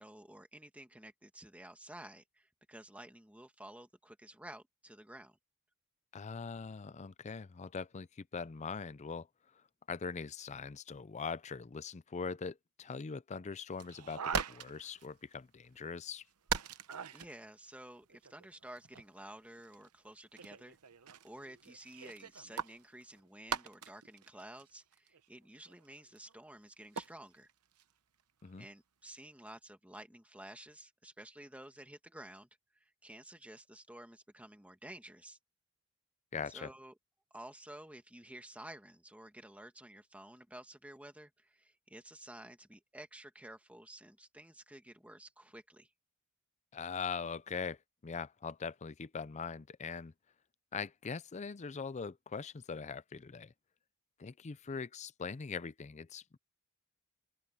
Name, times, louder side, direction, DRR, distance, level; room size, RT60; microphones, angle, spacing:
voice 1, 0.0-5.4 17.1-20.8 21.2-27.5 28.6-32.5 32.8-35.4 36.5-36.9 37.3-45.9, right 1 dB, 5° right, 1.8 m, -52 dB
voice 2, 6.1-9.3 9.9-16.2 28.4-28.7 36.3-36.7 46.7-47.8 48.0-50.1 50.7-53.5 54.2-56.4, left 5 dB, 30° left, 0.5 m, -41 dB
sound 1, 13.7-15.1 15.3-15.4 15.6-15.7 16.5-17.4 18.0-19.0 19.6-19.9 20.4-26.3 26.7-27.5 27.8-27.9 28.4-28.6, right 6 dB, 90° right, 1.0 m, -41 dB
open air
head